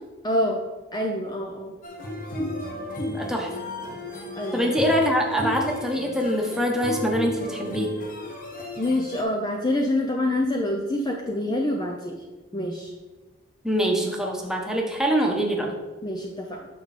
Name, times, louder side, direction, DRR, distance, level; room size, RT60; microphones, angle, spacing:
voice 1, 0.2-0.6 0.9-1.7 4.4-4.7 8.8-12.2 12.5-12.9 16.0-16.6, left 1 dB, 20° left, 1 dB, 0.6 m, -26 dB
sound 1, 1.8-9.2, left 1 dB, 45° left, 1.3 m, -33 dB
voice 2, 3.1-3.5 4.5-7.9 13.6-15.7, equal, 5° right, 0 dB, 1.2 m, -24 dB
9.2 x 6.1 x 4.2 m, 1.2 s
head